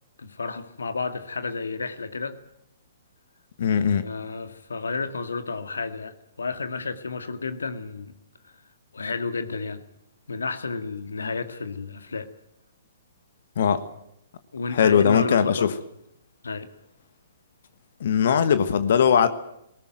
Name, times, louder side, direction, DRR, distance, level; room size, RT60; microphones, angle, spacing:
voice 1, 0.2-2.4 4.0-8.1 8.9-9.8 10.3-12.3 14.5-15.7 16.4-16.7, left 4 dB, 70° left, 10 dB, 1.9 m, -31 dB
voice 2, 3.6-4.1 13.6-13.8 14.7-15.7 18.0-19.3, left 7 dB, 55° left, 12 dB, 1.5 m, -20 dB
21.0 x 18.5 x 9.1 m, 0.81 s
figure-of-eight pair, 120°, 0 cm